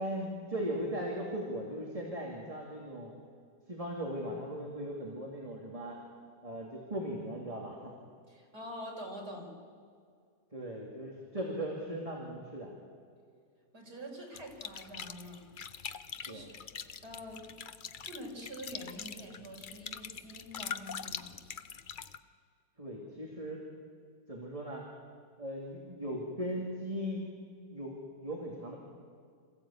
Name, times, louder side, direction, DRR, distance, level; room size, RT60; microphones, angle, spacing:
voice 1, 0.0-3.1 3.7-6.0 6.4-7.9 10.5-12.7 16.3-16.5 22.8-23.6 24.3-24.8 25.4-27.3 27.7-28.8, equal, 20° right, -2 dB, 2.6 m, -38 dB
voice 2, 8.3-9.5 13.7-15.5 16.1-16.6 17.0-17.5 18.1-21.3, equal, 75° right, -1 dB, 5.1 m, -45 dB
sound 1, 14.3-22.2, left 7 dB, 55° left, 0.6 m, -43 dB
26.5 x 15.5 x 8.7 m, 2.2 s
omnidirectional pair, 1.7 m